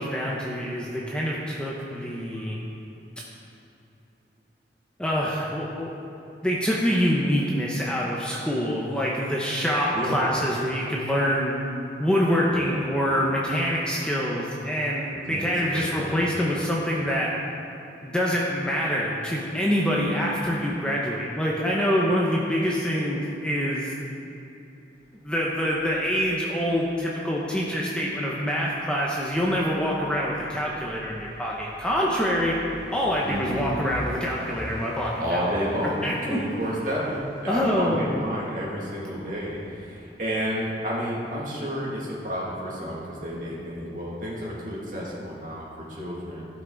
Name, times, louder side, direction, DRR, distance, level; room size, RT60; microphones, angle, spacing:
voice 1, 0.0-2.6 5.0-5.9 6.4-11.6 12.0-17.3 18.0-23.9 25.2-32.6 32.9-35.5 36.0-36.4 37.5-38.2, equal, 5° left, -4 dB, 0.8 m, -25 dB
voice 2, 9.9-10.2 12.5-12.7 15.3-16.2 19.9-20.1 33.2-33.7 35.2-46.5, equal, 45° right, -5 dB, 2.2 m, -31 dB
sound 1, 25.0-27.1 28.8-40.6, equal, 65° left, 1.4 m, -46 dB
14.5 x 6.0 x 3.9 m, 2.9 s
head